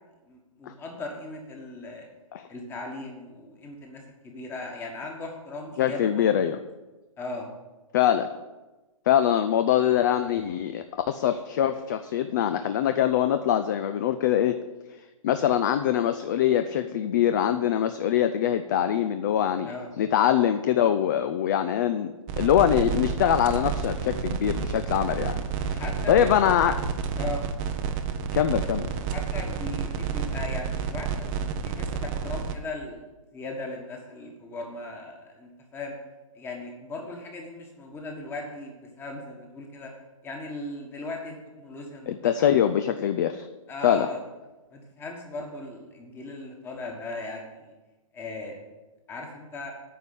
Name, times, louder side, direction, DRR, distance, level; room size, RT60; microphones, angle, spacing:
voice 1, 0.3-2.1 2.5-6.5 7.2-7.5 19.6-19.9 25.7-26.3 27.2-27.5 29.1-33.0 33.3-36.0 36.3-39.9 40.2-42.6 43.7-44.2 44.7-47.7 48.1-48.6 49.1-49.7, left 2 dB, 15° left, 2 dB, 1.5 m, -38 dB
voice 2, 5.8-6.6 7.9-8.3 9.1-14.6 15.2-19.7 20.0-25.4 25.7-25.8 26.1-26.8 28.3-28.9 42.1-43.5 43.8-44.1, left 10 dB, 35° left, 10 dB, 0.4 m, -23 dB
sound 1, 22.3-32.5, right 6 dB, 20° right, 0.6 m, -30 dB
9.4 x 5.5 x 8.2 m, 1.1 s
hypercardioid pair, 150°, 18 cm